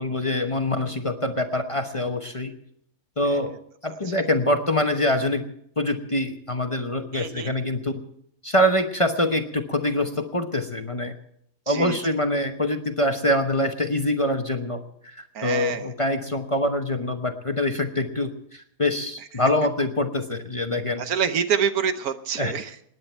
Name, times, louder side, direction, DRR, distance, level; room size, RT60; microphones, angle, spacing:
voice 1, 0.0-2.5 3.2-3.5 3.8-5.4 5.8-8.0 8.4-11.1 11.7-21.0 22.4-22.5, left 1 dB, 25° left, 5 dB, 0.9 m, -25 dB
voice 2, 7.1-7.6 11.7-12.0 15.3-15.9 21.0-22.7, right 7 dB, 80° right, 10 dB, 1.5 m, -26 dB
27.5 x 9.8 x 4.5 m, 0.70 s
omnidirectional pair, 1.5 m